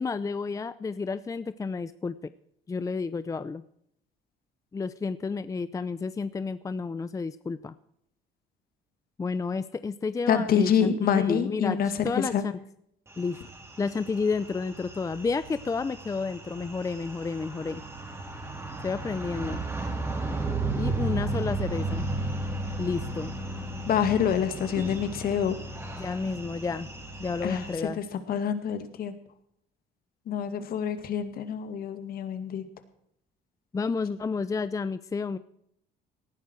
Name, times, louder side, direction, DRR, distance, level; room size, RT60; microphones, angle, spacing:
voice 1, 0.0-2.3 2.7-3.6 4.7-7.7 9.2-11.8 12.0-12.5 13.2-13.4 13.8-17.8 18.8-19.6 20.8-22.1 22.8-23.3 26.0-26.9 27.2-28.0 33.7-35.4, left 4 dB, 20° left, 14 dB, 0.5 m, -31 dB
voice 2, 10.3-12.4 23.9-25.6 27.4-27.6 27.9-29.2 30.3-32.6, left 8 dB, 60° left, 9 dB, 2.0 m, -26 dB
sound 1, 13.2-27.7, right 2 dB, 15° right, 3.9 m, -34 dB
18.0 x 11.0 x 4.6 m, 0.72 s
cardioid pair, 110°, 17 cm